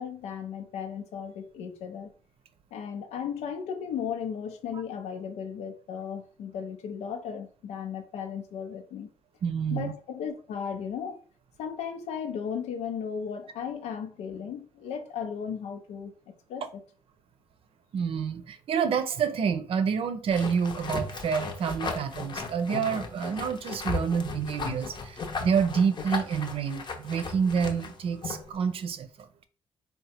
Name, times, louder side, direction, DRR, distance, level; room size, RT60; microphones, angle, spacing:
voice 1, 0.0-2.1 2.7-9.1 9.7-11.2 11.6-16.8, left 7 dB, 80° left, 0.7 m, -36 dB
voice 2, 9.4-9.9 17.9-29.3, right 6 dB, 60° right, 0.6 m, -28 dB
sound 1, 20.3-28.5, left 4 dB, 45° left, 0.8 m, -36 dB
3.6 x 2.3 x 4.2 m
supercardioid pair, 70°, 11 cm